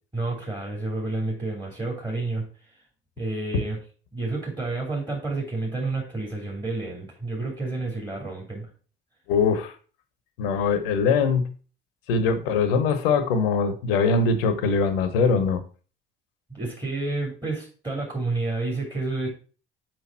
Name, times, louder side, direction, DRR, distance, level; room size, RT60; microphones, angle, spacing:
voice 1, 0.1-2.5 3.2-3.8 4.1-8.7 16.5-19.3, right 2 dB, 15° right, -2 dB, 2.8 m, -30 dB
voice 2, 9.3-9.7 10.4-11.5 12.1-15.6, left 5 dB, 75° left, 10 dB, 1.0 m, -22 dB
6.1 x 5.1 x 4.5 m, 0.39 s
figure-of-eight pair, 55°, 29 cm